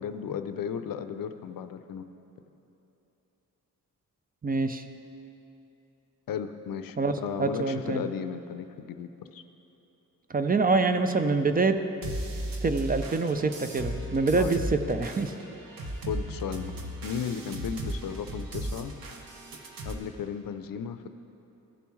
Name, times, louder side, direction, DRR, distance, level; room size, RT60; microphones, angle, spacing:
voice 1, 0.0-2.3 6.3-9.4 14.4-14.6 16.1-16.7 17.0-18.9 19.9-21.1, left 7 dB, 80° left, 10 dB, 0.5 m, -35 dB
voice 2, 4.4-4.8 7.0-7.1 7.4-8.0 10.3-11.8 12.6-15.3, right 3 dB, 25° right, 8 dB, 0.4 m, -25 dB
sound 1, 12.0-19.9, right 1 dB, 90° right, 0.9 m, -36 dB
15.0 x 6.9 x 3.1 m, 3.0 s
wide cardioid pair, 100°, 34 cm